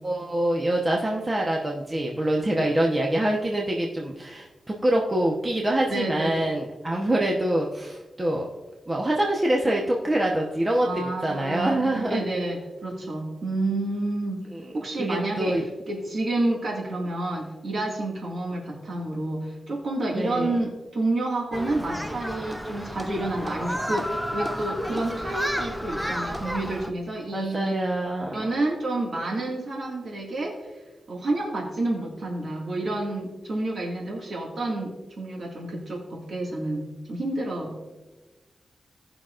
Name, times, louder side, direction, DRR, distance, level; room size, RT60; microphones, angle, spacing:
voice 1, 0.0-8.5 8.9-12.2 14.5-14.7 15.0-15.6 20.2-20.5 27.3-28.5, right 1 dB, 25° right, -1 dB, 1.0 m, -25 dB
voice 2, 2.4-2.8 5.9-6.5 10.8-14.4 14.7-27.7 28.3-30.7 31.1-37.8, right 2 dB, 65° right, -2 dB, 2.0 m, -29 dB
Human group actions, 21.5-26.9, equal, 5° right, 0.6 m, -31 dB
18.0 x 6.0 x 2.5 m, 1.1 s
wide cardioid pair, 90°, 0 cm